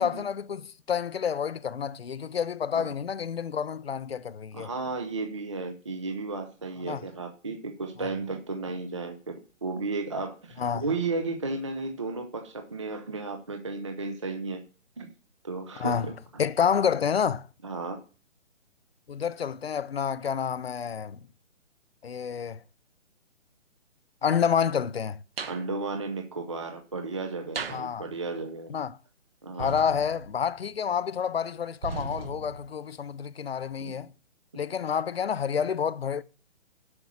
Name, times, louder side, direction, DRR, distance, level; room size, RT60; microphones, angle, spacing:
voice 1, 0.0-4.7 6.9-7.0 10.6-10.8 15.8-17.5 19.1-21.2 22.0-22.6 24.2-25.2 27.7-28.1 28.7-29.0 29.6-34.1 34.5-36.2, left 7 dB, 55° left, 0.6 m, -29 dB
voice 2, 4.5-14.6 15.0-15.1 15.4-16.1 17.6-18.0 25.5-28.7 29.4-29.8 33.8-33.9, right 3 dB, 25° right, 0.6 m, -34 dB
sound 1, 25.4-25.7 27.5-27.9 29.6-30.6 31.8-32.7, right 4 dB, 50° right, 1.1 m, -37 dB
7.9 x 6.1 x 7.0 m
hypercardioid pair, 170°, 38 cm